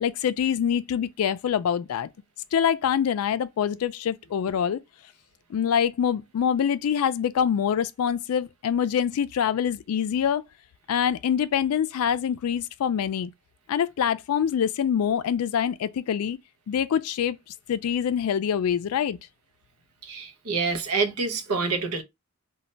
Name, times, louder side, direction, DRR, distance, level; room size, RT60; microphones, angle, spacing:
voice 1, 0.0-2.1 2.5-4.8 5.5-10.4 10.9-13.3 13.7-16.4 16.7-17.4 17.7-19.2, left 8 dB, 80° left, 0.3 m, -25 dB
voice 2, 20.0-22.0, right 4 dB, 90° right, 0.6 m, -27 dB
2.2 x 2.1 x 3.8 m
head